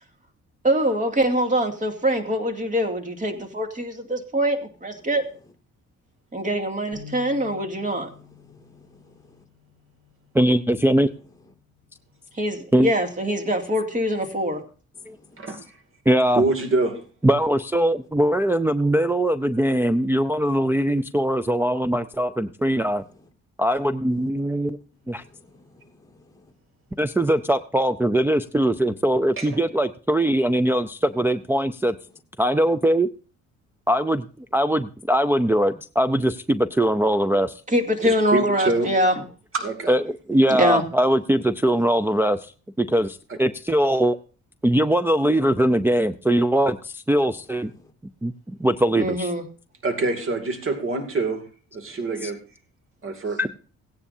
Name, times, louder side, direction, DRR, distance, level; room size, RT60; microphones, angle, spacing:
voice 1, 0.6-5.2 6.3-8.1 12.4-14.6 37.7-39.1 40.6-40.8 49.0-49.4, equal, 25° right, 5 dB, 2.4 m, -23 dB
sound 1, 6.9-13.2, left 9 dB, 85° right, 4.3 m, -50 dB
voice 2, 8.4-9.4 15.0-15.5 25.2-26.5 47.7-47.8 51.9-52.0, left 2 dB, 10° left, 2 dB, 2.2 m, -55 dB
voice 3, 10.3-11.1 12.7-12.9 15.1-15.2 16.1-16.4 17.2-23.0 23.6-24.8 25.1-25.2 27.0-32.0 32.4-33.1 33.9-34.3 34.5-37.5 39.9-42.5 42.8-44.2 44.6-47.7 48.2-48.3 48.6-49.3 52.2-52.3 53.4-53.5, right 1 dB, 5° right, 7 dB, 0.5 m, -21 dB
voice 4, 16.3-17.0 29.4-29.5 38.0-38.9 39.5-40.0 49.8-51.4 51.7-52.4 53.0-53.5, right 3 dB, 45° right, 5 dB, 2.5 m, -25 dB
16.5 x 9.9 x 2.7 m, 0.38 s
cardioid pair, 90°, 30 cm